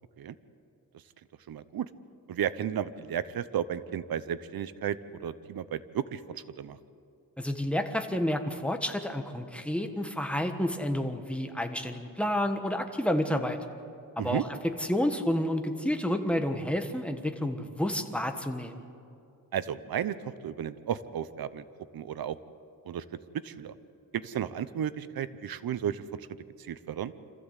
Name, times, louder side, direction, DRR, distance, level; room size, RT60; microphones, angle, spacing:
voice 1, 1.5-1.9 2.3-6.8 14.2-14.4 19.5-21.6 21.9-22.4 22.8-23.0 23.3-23.7 24.1-26.3 26.6-27.1, right 9 dB, 85° right, 14 dB, 0.8 m, -33 dB
voice 2, 7.4-13.6 14.2-18.7, left 1 dB, 5° left, 6 dB, 1.4 m, -30 dB
26.5 x 14.5 x 8.2 m, 2.6 s
wide cardioid pair, 120°, 35 cm